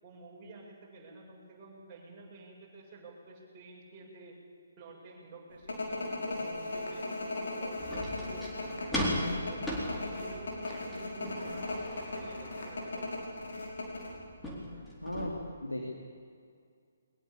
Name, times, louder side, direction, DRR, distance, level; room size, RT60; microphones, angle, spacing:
voice 1, 0.0-4.4 4.8-8.9 9.4-13.2, right 3 dB, 20° right, -4 dB, 7.6 m, -50 dB
sound 1, 5.7-14.1, left 2 dB, 60° left, 6.1 m, -37 dB
metal thing kicking hits thud rattle harder end, 7.8-15.3, left 1 dB, 5° left, 4.3 m, -38 dB
voice 2, 15.0-16.0, left 1 dB, 85° left, 0 dB, 3.7 m, -37 dB
22.0 x 20.5 x 8.8 m, 2.2 s
figure-of-eight pair, 140°, 0 cm